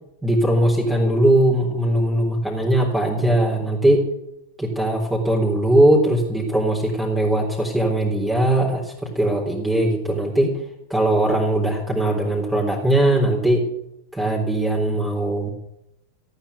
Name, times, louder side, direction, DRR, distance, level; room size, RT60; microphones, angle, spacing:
voice 1, 0.2-4.1 4.6-10.6 10.9-13.7 14.1-15.5, right 1 dB, 5° right, -3 dB, 3.7 m, -20 dB
15.0 x 8.9 x 9.4 m, 0.82 s
figure-of-eight pair, 90°, 0 cm